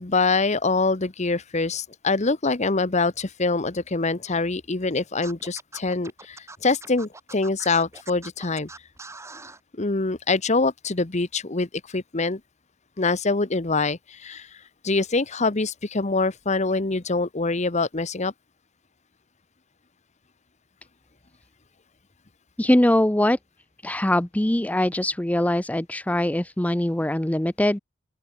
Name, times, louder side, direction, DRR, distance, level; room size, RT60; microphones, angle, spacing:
voice 1, 0.0-8.7 9.7-12.4 13.0-18.3, left 3 dB, 30° left, 1.0 m, -25 dB
Scratching (performance technique), 5.2-9.6, right 3 dB, 15° right, 3.8 m, -43 dB
voice 2, 22.6-23.4 23.8-27.8, left 1 dB, 5° left, 0.5 m, -22 dB
open air
head